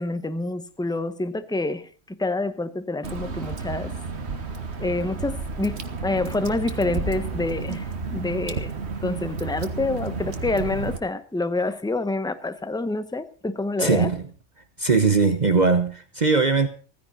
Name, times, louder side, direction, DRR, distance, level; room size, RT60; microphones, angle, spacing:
voice 1, 0.0-3.9 4.8-8.8 9.0-14.1, left 2 dB, 5° left, 0.8 m, -27 dB
Water / Drip, 3.0-11.0, right 4 dB, 60° right, 1.6 m, -31 dB
voice 2, 13.8-14.3 14.8-16.7, right 4 dB, 35° right, 1.1 m, -20 dB
16.0 x 15.0 x 4.2 m
omnidirectional pair, 1.3 m